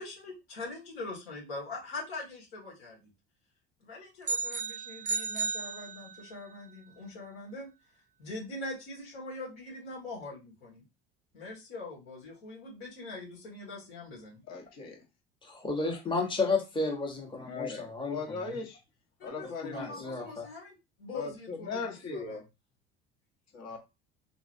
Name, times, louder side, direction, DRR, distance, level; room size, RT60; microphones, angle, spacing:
voice 1, 0.0-3.1 3.8-7.7 8.2-10.8 11.3-14.4 19.2-22.4, left 2 dB, 90° left, -3 dB, 2.0 m, -43 dB
sound 1, 4.2-6.4, right 4 dB, 25° right, 0.6 m, -34 dB
voice 2, 14.5-15.0 17.4-18.8 19.2-20.0 21.1-22.4 23.5-23.8, left 4 dB, 60° left, 2 dB, 1.5 m, -38 dB
voice 3, 15.4-18.5 19.6-20.5, left 3 dB, 15° left, 1 dB, 1.1 m, -32 dB
3.8 x 3.0 x 2.6 m, 0.25 s
hypercardioid pair, 75°, 30 cm